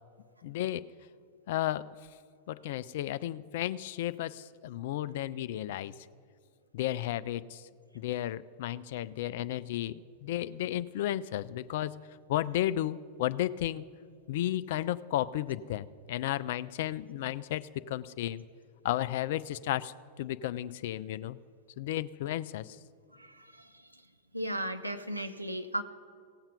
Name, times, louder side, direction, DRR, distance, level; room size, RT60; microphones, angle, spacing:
voice 1, 0.4-0.9 1.5-1.9 2.5-6.0 6.7-7.7 7.9-12.0 12.3-13.9 14.3-18.4 18.8-21.4 21.8-22.8, left 13 dB, 55° left, 15 dB, 0.3 m, -33 dB
voice 2, 23.1-24.0 24.3-25.8, right 1 dB, 85° right, 6 dB, 0.6 m, -36 dB
17.5 x 7.2 x 5.3 m, 2.2 s
figure-of-eight pair, 90°, 0 cm